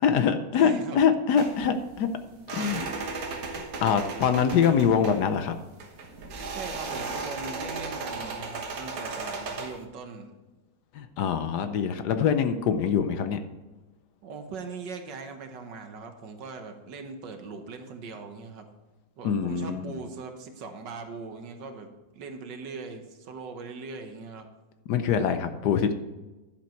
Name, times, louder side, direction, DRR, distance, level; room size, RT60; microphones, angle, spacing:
voice 1, 0.0-2.1 2.5-2.8 3.8-5.6 10.9-13.4 19.2-19.9 24.9-25.9, left 7 dB, 70° left, 9 dB, 1.2 m, -24 dB
voice 2, 0.5-1.0 2.5-2.9 6.5-10.3 14.2-18.7 19.2-24.5, right 4 dB, 70° right, 5 dB, 1.7 m, -40 dB
sound 1, 1.4-9.8, right 3 dB, 55° right, 1.6 m, -36 dB
11.5 x 7.5 x 4.5 m, 1.2 s
omnidirectional pair, 2.0 m